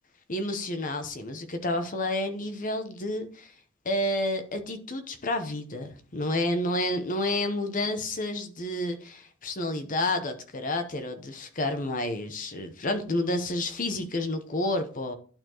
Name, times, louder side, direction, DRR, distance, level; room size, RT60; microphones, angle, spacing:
voice 1, 0.3-3.5 3.8-15.1, left 1 dB, 40° left, 0.9 m, -30 dB
11.5 x 4.3 x 3.0 m
head